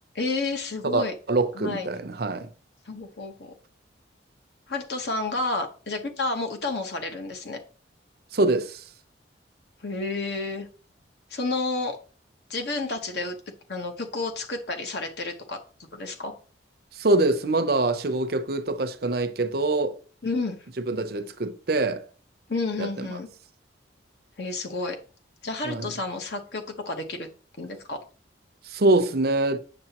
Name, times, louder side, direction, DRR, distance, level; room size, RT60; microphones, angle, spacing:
voice 1, 0.1-1.1 1.5-1.9 2.9-3.5 4.7-7.6 9.8-10.7 11.3-12.0 12.5-13.3 13.7-15.6 15.9-16.3 20.2-20.6 22.5-23.3 24.4-25.0 25.4-27.3 27.6-28.0, left 3 dB, 60° left, 1.1 m, -30 dB
voice 2, 0.8-2.5 8.3-8.8 16.9-20.0 20.9-22.0 22.8-23.2 25.6-25.9 28.6-29.6, right 2 dB, 55° right, 0.6 m, -24 dB
8.8 x 6.7 x 2.9 m
head